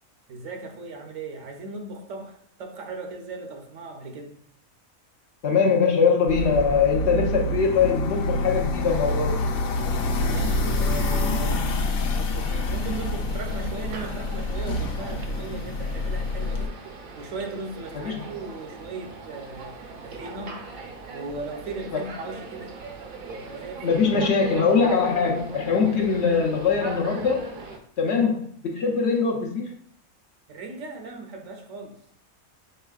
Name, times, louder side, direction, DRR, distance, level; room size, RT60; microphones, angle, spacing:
voice 1, 0.3-4.4 10.2-20.7 21.1-22.8 23.3-24.0 25.8-26.0 28.2-28.3 30.5-32.0, right 3 dB, 75° right, 4 dB, 1.1 m, -38 dB
voice 2, 5.4-9.6 17.9-18.3 21.9-22.0 23.8-27.6 28.0-29.7, left 5 dB, 60° left, 1 dB, 0.9 m, -22 dB
sound 1, 6.3-16.7, left 2 dB, 90° left, 1.1 m, -27 dB
sound 2, 12.4-27.8, right 3 dB, 55° right, 0.7 m, -40 dB
5.5 x 4.1 x 2.3 m, 0.63 s
omnidirectional pair, 1.4 m